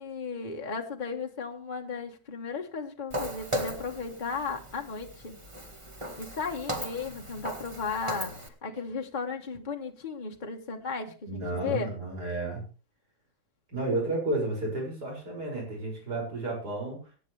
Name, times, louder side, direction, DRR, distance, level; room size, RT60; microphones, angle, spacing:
voice 1, 0.0-5.4 6.2-11.9, left 5 dB, 30° left, 2 dB, 1.4 m, -35 dB
Walk footsteps, 3.1-8.5, right 1 dB, 15° right, 1.9 m, -37 dB
voice 2, 11.3-12.6 13.7-17.0, right 2 dB, 60° right, -1 dB, 7.1 m, -32 dB
23.0 x 9.8 x 3.4 m, 0.34 s
omnidirectional pair, 1.9 m